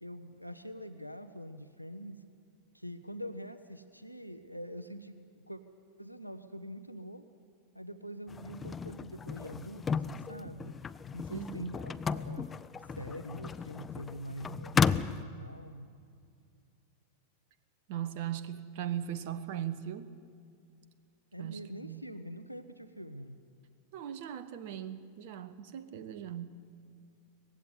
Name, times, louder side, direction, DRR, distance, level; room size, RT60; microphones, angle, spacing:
voice 1, 0.0-2.2 2.7-5.6 6.0-7.3 7.7-10.8 11.1-12.5 12.8-15.9 21.3-23.4, equal, 90° right, 11 dB, 0.8 m, -44 dB
sound 1, 8.3-15.2, left 6 dB, 20° left, 0.5 m, -34 dB
voice 2, 11.3-11.7 17.9-20.1 21.4-22.0 23.9-26.5, right 10 dB, 50° right, 12 dB, 1.0 m, -39 dB
19.5 x 16.0 x 9.6 m, 2.3 s
figure-of-eight pair, 90°, 0 cm